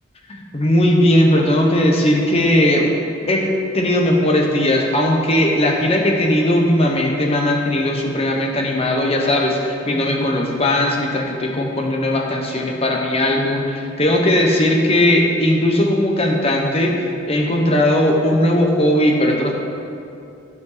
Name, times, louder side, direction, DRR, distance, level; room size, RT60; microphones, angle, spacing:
voice 1, 0.3-2.9 3.3-19.5, left 1 dB, 30° left, 0 dB, 1.1 m, -18 dB
14.5 x 6.0 x 4.0 m, 2.6 s
head